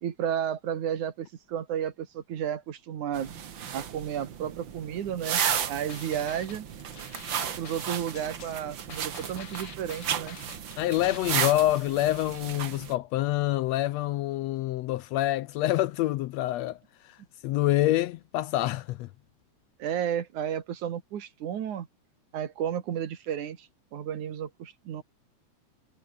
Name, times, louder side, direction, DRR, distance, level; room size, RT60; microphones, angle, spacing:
voice 1, 0.0-3.3 3.7-5.4 5.7-6.7 7.6-10.4 19.8-21.9 22.3-25.0, right 9 dB, 80° right, 3.4 m, -32 dB
sound 1, 3.1-12.9, right 8 dB, 45° right, 1.8 m, -34 dB
sound 2, 5.2-11.2, left 7 dB, 50° left, 2.8 m, -47 dB
voice 2, 10.8-16.8 17.0-17.2 17.4-19.1, left 15 dB, 75° left, 1.7 m, -26 dB
omnidirectional pair, 3.4 m